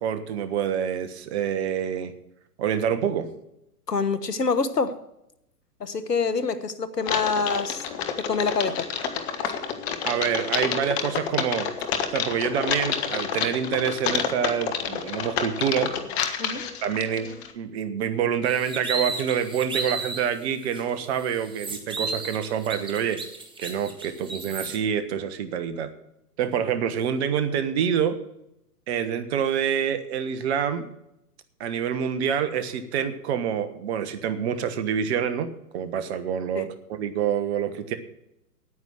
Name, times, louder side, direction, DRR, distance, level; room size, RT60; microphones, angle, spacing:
voice 1, 0.0-2.1 2.6-3.3 10.0-11.7 12.1-15.9 16.8-17.3 17.5-23.2 23.6-25.9 26.4-28.2 28.9-30.9 31.6-37.9, right 8 dB, 45° right, 11 dB, 1.4 m, -27 dB
voice 2, 3.9-5.0 5.8-7.8 8.2-8.9 16.4-16.6 36.5-36.6, left 4 dB, 90° left, 13 dB, 1.3 m, -26 dB
Typing, 7.0-17.5, left 7 dB, 40° left, 1.6 m, -29 dB
sound 1, 18.5-20.3 20.7-20.8 21.2-24.8, right 3 dB, 10° right, 1.3 m, -33 dB
9.5 x 9.2 x 7.9 m, 0.84 s
figure-of-eight pair, 115°, 47 cm